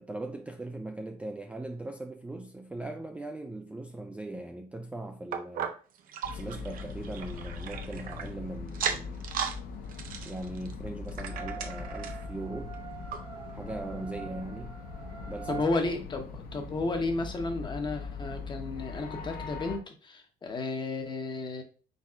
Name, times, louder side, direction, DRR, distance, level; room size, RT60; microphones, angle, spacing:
voice 1, 0.0-5.8 6.3-9.3 10.2-12.8 13.5-14.8 15.2-15.6, right 2 dB, 10° right, 0.3 m, -40 dB
sound 1, 5.3-8.3 8.7-9.6 9.9-12.3 12.7-12.8 13.1-13.2 13.8-13.9, right 7 dB, 55° right, 0.6 m, -36 dB
sound 2, 6.2-19.8, left 5 dB, 60° left, 0.7 m, -41 dB
sound 3, 11.3-15.8, right 7 dB, 35° right, 1.0 m, -44 dB
voice 2, 15.5-21.6, left 3 dB, 25° left, 0.9 m, -32 dB
4.1 x 3.9 x 2.4 m
cardioid pair, 110°, 17 cm